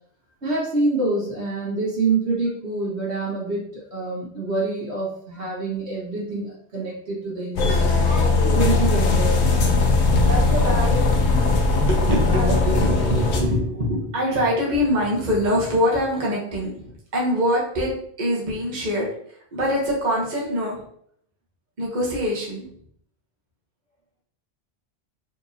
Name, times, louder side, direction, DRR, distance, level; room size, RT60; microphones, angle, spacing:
voice 1, 0.4-8.0 8.5-9.6, right 3 dB, 80° right, -5 dB, 1.9 m, -26 dB
sound 1, 7.6-13.4, left 3 dB, 85° left, 1.0 m, -19 dB
voice 2, 10.2-11.1 11.8-17.9 18.2-20.8 21.8-22.7, equal, 45° right, -4 dB, 1.2 m, -24 dB
4.6 x 3.5 x 2.8 m, 0.63 s
omnidirectional pair, 1.1 m